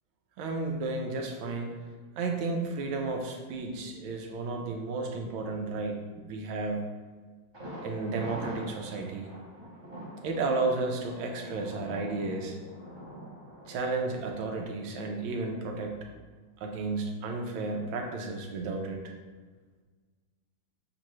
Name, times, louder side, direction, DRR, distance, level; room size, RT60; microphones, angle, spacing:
voice 1, 0.4-1.7 2.2-6.9 7.8-9.3 10.2-12.5 13.7-16.0 16.6-19.0, right 3 dB, 85° right, 2 dB, 1.5 m, -33 dB
Thunder, 7.5-15.3 15.6-15.7 16.1-16.2, right 1 dB, 25° right, 0.6 m, -44 dB
6.7 x 2.6 x 3.0 m, 1.4 s
omnidirectional pair, 2.2 m